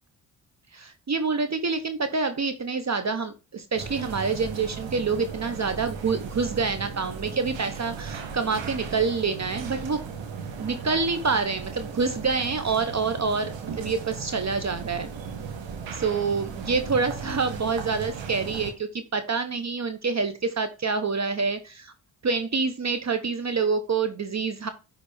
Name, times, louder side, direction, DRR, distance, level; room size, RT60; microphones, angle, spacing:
voice 1, 0.7-10.0 10.6-15.1 15.9-21.9 22.2-24.7, right 4 dB, 35° right, 10 dB, 1.0 m, -27 dB
sound 1, 3.7-18.7, right 5 dB, 80° right, 1.5 m, -36 dB
10.0 x 4.1 x 3.5 m, 0.31 s
supercardioid pair, 50°, 44 cm